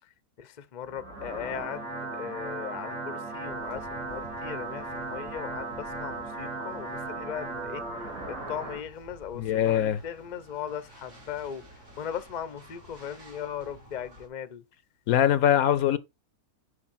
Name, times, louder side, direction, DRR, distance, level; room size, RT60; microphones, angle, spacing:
voice 1, 0.4-7.8 8.3-11.6 12.0-14.6, left 8 dB, 40° left, 0.7 m, -38 dB
sound 1, 0.8-8.8, right 3 dB, 65° right, 3.2 m, -37 dB
sound 2, 3.4-14.3, equal, 90° right, 3.8 m, -52 dB
voice 2, 9.4-10.0 15.1-16.0, left 10 dB, 75° left, 1.1 m, -22 dB
9.8 x 5.1 x 4.2 m
omnidirectional pair, 1.6 m